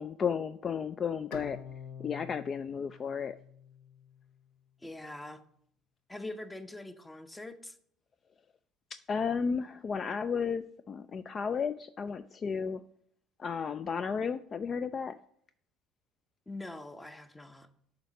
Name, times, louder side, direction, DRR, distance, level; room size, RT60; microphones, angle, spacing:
voice 1, 0.0-1.6 2.0-3.4 8.9-12.8 13.4-15.1, left 6 dB, 40° left, 12 dB, 0.3 m, -33 dB
Bowed string instrument, 1.3-4.5, left 8 dB, 75° left, 0.7 m, -48 dB
voice 2, 4.8-5.4 6.1-7.8 16.5-17.7, left 2 dB, 15° left, 10 dB, 0.8 m, -43 dB
6.8 x 4.1 x 6.4 m, 0.65 s
hypercardioid pair, 70°, 0 cm